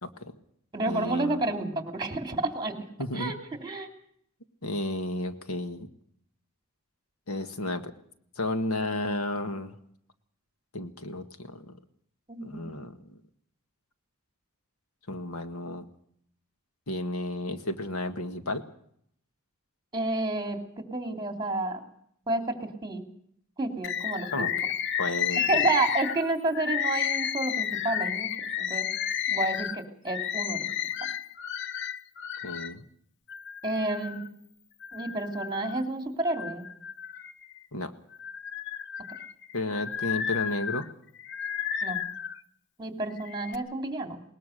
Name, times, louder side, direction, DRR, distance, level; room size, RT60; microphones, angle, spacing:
voice 1, 0.0-0.3 0.9-1.4 3.0-3.3 4.6-5.9 7.3-7.9 8.4-9.7 10.7-11.8 12.4-13.0 15.1-15.9 16.9-18.6 24.3-24.5 25.0-25.7 32.4-32.8 37.7-37.9 39.5-40.8, left 2 dB, 80° left, 8 dB, 1.7 m, -32 dB
voice 2, 0.7-2.7 3.1-3.3 3.6-3.9 12.3-12.8 19.9-21.8 22.3-23.0 23.6-24.5 25.5-28.8 29.3-30.7 33.6-34.2 34.9-36.6 41.8-42.0 42.8-44.2, right 2 dB, 20° right, 6 dB, 3.0 m, -30 dB
Bird, 23.8-32.7 33.3-34.3 34.8-35.8 36.2-37.6 38.1-42.4 43.1-43.6, left 9 dB, 55° left, 0.7 m, -32 dB
21.0 x 20.0 x 6.6 m, 0.68 s
head